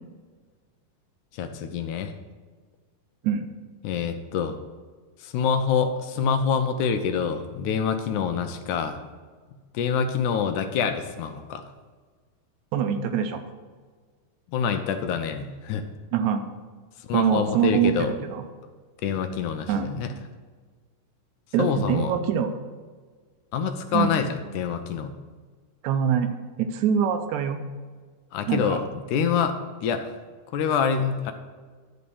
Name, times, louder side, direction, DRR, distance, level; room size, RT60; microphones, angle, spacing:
voice 1, 1.3-2.1 3.8-4.6 5.2-9.0 9.7-11.7 14.5-15.9 17.0-18.1 19.0-20.1 21.6-22.1 23.5-24.3 24.5-25.1 28.3-30.1 30.5-31.3, left 6 dB, 80° left, 7 dB, 1.9 m, -26 dB
voice 2, 12.7-13.4 16.1-16.4 17.1-18.4 19.7-19.9 21.5-22.5 23.9-24.2 25.8-27.6 28.5-28.8, right 8 dB, 80° right, 7 dB, 1.8 m, -24 dB
11.0 x 4.2 x 7.0 m, 1.5 s
omnidirectional pair, 3.8 m